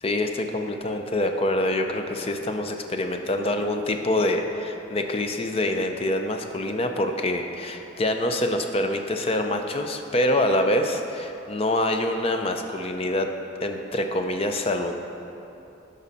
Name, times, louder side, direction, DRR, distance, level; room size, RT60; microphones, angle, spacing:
voice 1, 0.0-13.3 13.6-14.9, left 1 dB, 30° left, 5 dB, 0.5 m, -25 dB
12.5 x 5.4 x 4.1 m, 2.9 s
head